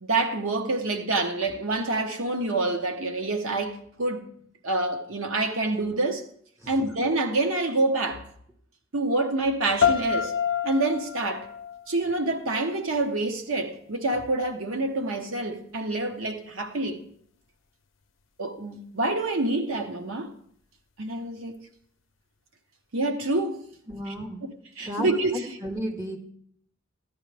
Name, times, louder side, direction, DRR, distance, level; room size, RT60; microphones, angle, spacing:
voice 1, 0.0-4.3 4.6-6.2 6.7-8.2 8.9-10.3 10.6-11.5 11.9-17.0 18.4-20.3 21.0-21.6 22.9-23.6 24.8-25.4, right 2 dB, 80° right, 1.1 m, -27 dB
sound 1, 9.8-12.8, left 8 dB, 70° left, 0.5 m, -28 dB
voice 2, 23.9-24.4 24.8-25.1 25.6-26.2, equal, 15° right, 1.4 m, -33 dB
14.5 x 9.9 x 3.4 m
head